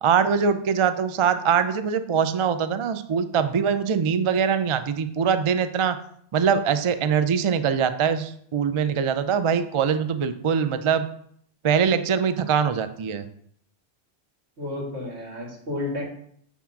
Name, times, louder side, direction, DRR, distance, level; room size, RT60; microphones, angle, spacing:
voice 1, 0.0-6.0 6.3-11.1 11.6-13.2, right 7 dB, 50° right, 11 dB, 0.3 m, -23 dB
voice 2, 14.6-16.0, left 2 dB, 85° right, -3 dB, 2.7 m, -31 dB
7.3 x 3.7 x 5.8 m, 0.65 s
omnidirectional pair, 1.1 m